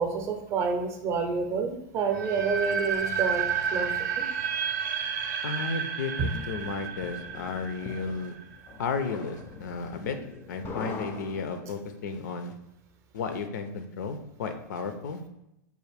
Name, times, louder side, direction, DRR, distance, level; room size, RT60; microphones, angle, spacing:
voice 1, 0.0-4.3 6.2-6.3, right 5 dB, 30° right, 5 dB, 0.5 m, -29 dB
sound 1, 2.1-9.0, right 7 dB, 85° right, 0.5 m, -31 dB
voice 2, 5.4-8.3 8.8-10.2 10.5-12.5 13.1-15.2, left 5 dB, 85° left, 7 dB, 0.5 m, -33 dB
sound 2, 6.2-12.0, left 4 dB, 25° left, 0.4 m, -43 dB
4.8 x 2.5 x 3.4 m, 0.84 s
supercardioid pair, 150°, 10 cm